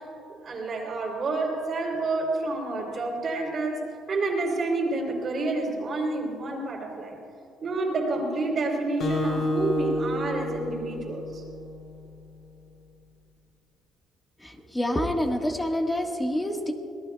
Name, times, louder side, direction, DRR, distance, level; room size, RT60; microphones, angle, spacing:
voice 1, 0.3-3.8 4.1-7.2 7.6-11.4, right 2 dB, 40° right, -7 dB, 3.1 m, -29 dB
Acoustic guitar, 9.0-11.8, left 1 dB, 75° left, 3.3 m, -29 dB
voice 2, 14.4-16.7, left 1 dB, 10° left, 2 dB, 1.5 m, -27 dB
26.5 x 18.5 x 2.3 m, 2.9 s
cardioid pair, 135°, 0 cm